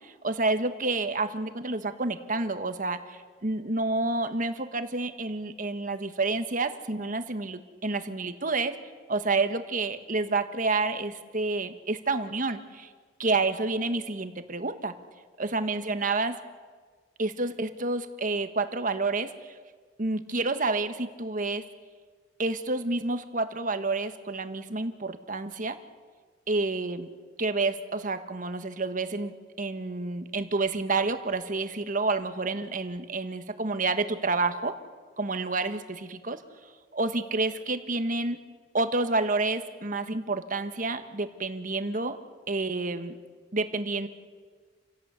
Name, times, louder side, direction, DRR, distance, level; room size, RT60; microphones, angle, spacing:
voice 1, 0.2-8.7 9.1-12.9 13.2-14.9 15.4-16.4 17.2-19.5 20.0-21.6 22.4-25.8 26.5-27.1 27.4-34.7 35.2-36.4 36.9-38.4 38.7-42.2 42.5-43.1 43.5-44.1, right 3 dB, 45° right, 9 dB, 1.4 m, -29 dB
28.5 x 17.0 x 8.2 m, 1.5 s
head